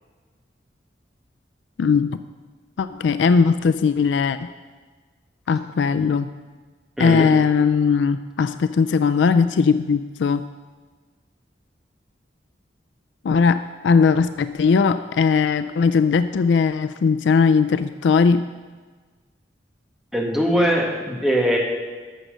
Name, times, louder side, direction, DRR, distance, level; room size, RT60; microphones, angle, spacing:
voice 1, 1.8-2.2 2.8-4.5 5.5-6.3 7.0-10.4 13.2-18.4, left 5 dB, 85° left, 11 dB, 0.4 m, -19 dB
voice 2, 7.0-7.3 20.1-21.6, equal, ahead, -2 dB, 1.8 m, -21 dB
13.0 x 6.2 x 6.5 m, 1.4 s
head